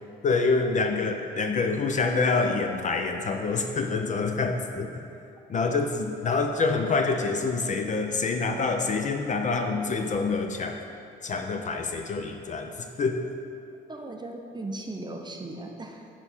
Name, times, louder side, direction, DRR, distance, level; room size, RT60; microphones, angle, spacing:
voice 1, 0.2-5.1 5.5-10.8 11.2-12.7 13.0-13.3, left 4 dB, 40° left, 5 dB, 0.4 m, -26 dB
voice 2, 13.9-16.1, right 2 dB, 20° right, 2 dB, 0.5 m, -37 dB
5.6 x 4.4 x 4.2 m, 2.5 s
cardioid pair, 90°, 20 cm